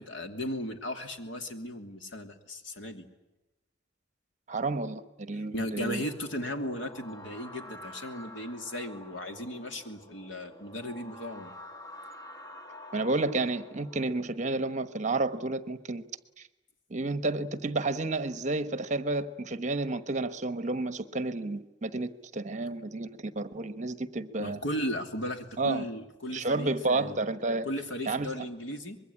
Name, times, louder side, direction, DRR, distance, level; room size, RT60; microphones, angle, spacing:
voice 1, 0.0-3.0 5.5-11.5 24.4-27.2 27.6-29.0, equal, 70° left, 5 dB, 2.9 m, -36 dB
voice 2, 4.5-6.0 12.9-16.0 16.4-16.5 16.9-24.6 25.6-25.8 26.3-27.7 28.1-28.4, right 2 dB, 40° right, 12 dB, 1.2 m, -31 dB
sound 1, 5.8-14.1, left 1 dB, 20° left, 2.2 m, -48 dB
24.5 x 22.0 x 9.9 m, 1.0 s
head